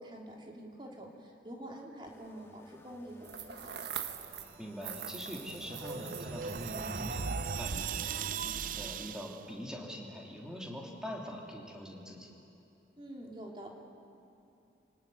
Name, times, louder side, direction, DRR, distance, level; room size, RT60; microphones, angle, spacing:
voice 1, 0.0-3.7 13.0-13.7, right 1 dB, 30° right, -1 dB, 3.0 m, -46 dB
sound 1, 2.1-7.6, left 1 dB, 15° left, 1.8 m, -59 dB
sound 2, 3.2-4.6 4.8-7.4, right 8 dB, 70° right, 1.3 m, -43 dB
voice 2, 4.6-12.3, equal, 5° right, -2 dB, 3.2 m, -44 dB
sound 3, 4.9-9.4, right 5 dB, 50° right, 0.6 m, -38 dB
28.0 x 18.5 x 9.5 m, 2.8 s
head